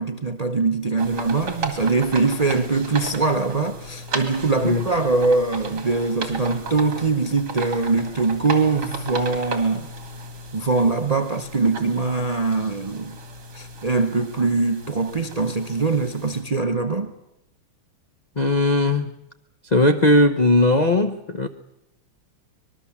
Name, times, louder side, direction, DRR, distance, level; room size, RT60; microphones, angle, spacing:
voice 1, 0.0-9.9 10.5-13.2 13.5-17.1, right 3 dB, 80° right, 0.3 m, -22 dB
sound 1, 1.0-16.4, right 2 dB, 55° right, 3.0 m, -35 dB
voice 2, 18.4-19.1 19.7-21.5, left 1 dB, 70° left, 0.4 m, -18 dB
25.0 x 20.5 x 7.2 m
omnidirectional pair, 2.3 m